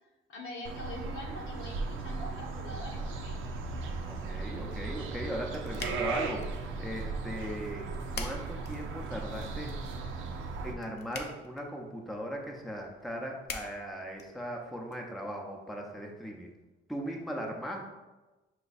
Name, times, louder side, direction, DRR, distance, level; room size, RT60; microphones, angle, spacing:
voice 1, 0.3-3.4, left 1 dB, 75° left, -1 dB, 1.1 m, -43 dB
sound 1, 0.6-10.7, right 3 dB, 85° right, 0.6 m, -37 dB
voice 2, 4.1-7.9 8.1-9.8 10.6-16.5 16.9-17.8, equal, ahead, 0 dB, 0.7 m, -38 dB
sound 2, 5.0-15.0, left 4 dB, 55° left, 0.7 m, -47 dB
5.7 x 2.3 x 4.1 m, 1.1 s
cardioid pair, 90°, 20 cm